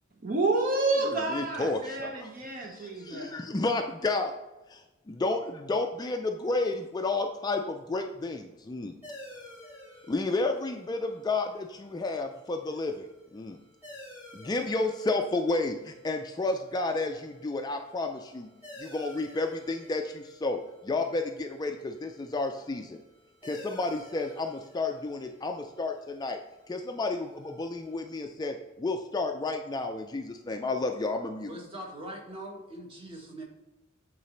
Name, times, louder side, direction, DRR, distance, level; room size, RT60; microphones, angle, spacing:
voice 1, 0.2-3.4, right 2 dB, 40° right, 2 dB, 0.6 m, -29 dB
voice 2, 1.3-2.3 2.6-4.3 4.7-8.9 10.1-13.6 14.3-18.5 18.8-23.0 23.4-26.4 26.7-31.5, left 3 dB, 20° left, 5 dB, 0.3 m, -31 dB
sound 1, 9.0-28.2, left 1 dB, 5° right, 1.7 m, -53 dB
voice 3, 31.4-33.4, right 1 dB, 25° right, -1 dB, 1.5 m, -42 dB
8.3 x 3.8 x 3.3 m, 1.1 s
head